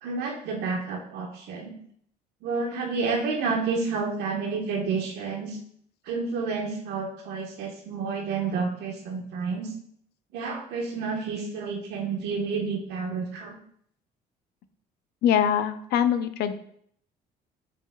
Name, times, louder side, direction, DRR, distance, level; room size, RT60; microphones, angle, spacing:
voice 1, 0.0-1.8 2.4-5.6 6.1-9.7 10.3-13.6, right 4 dB, 80° right, 1 dB, 1.3 m, -30 dB
voice 2, 15.2-16.5, left 9 dB, 75° left, 10 dB, 0.6 m, -23 dB
6.8 x 6.1 x 2.4 m, 0.65 s
cardioid pair, 110°, 17 cm